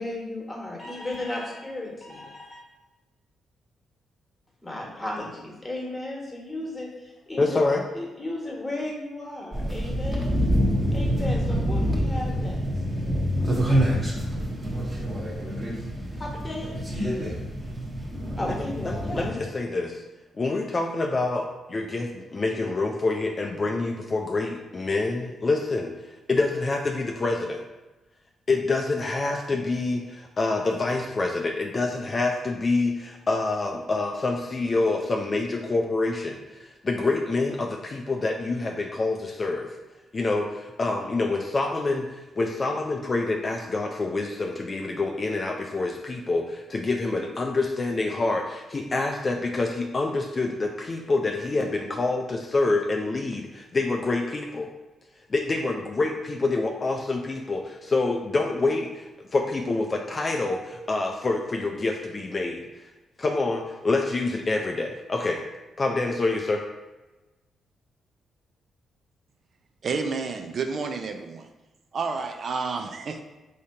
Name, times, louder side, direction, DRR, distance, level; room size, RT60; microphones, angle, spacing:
voice 1, 0.0-2.6 4.6-7.6 7.9-10.4 10.9-12.6 16.2-17.3 18.4-19.3, left 1 dB, 15° left, -2 dB, 1.3 m, -35 dB
voice 2, 7.4-7.8 18.5-18.6 18.8-20.0 20.3-27.6 28.5-39.8 40.1-54.7 55.3-62.8 63.2-65.4 65.8-66.6, left 3 dB, 35° left, 2 dB, 0.4 m, -27 dB
sound 1, 9.5-19.3, equal, 20° right, 1.0 m, -26 dB
voice 3, 69.8-71.5 71.9-73.2, right 4 dB, 55° right, 5 dB, 0.4 m, -30 dB
3.6 x 2.8 x 4.4 m, 1.1 s
cardioid pair, 80°, 0 cm